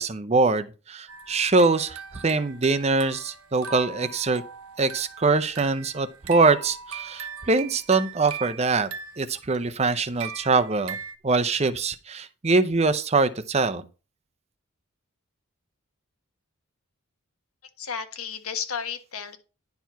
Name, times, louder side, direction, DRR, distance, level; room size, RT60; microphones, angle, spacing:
voice 1, 0.0-4.4 4.8-8.9 9.2-11.0 11.2-13.8, right 3 dB, 30° right, 0.6 m, -23 dB
sound 1, 1.1-11.2, right 6 dB, 80° right, 1.0 m, -40 dB
voice 2, 17.8-19.4, left 7 dB, 80° left, 1.4 m, -33 dB
10.5 x 4.6 x 5.7 m
head